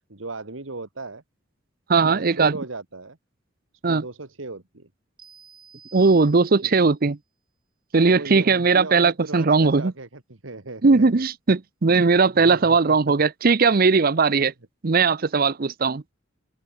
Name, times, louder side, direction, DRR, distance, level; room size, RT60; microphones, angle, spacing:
voice 1, 0.1-1.2 2.0-3.2 3.9-4.9 6.6-6.9 8.0-11.2 12.4-13.0, right 3 dB, 75° right, 1.9 m, -37 dB
voice 2, 1.9-2.5 3.8-4.0 5.9-7.2 7.9-9.9 10.8-14.5 14.8-16.0, right 4 dB, 45° right, 0.7 m, -19 dB
sound 1, 5.2-6.9, right 7 dB, 25° right, 5.4 m, -49 dB
open air
head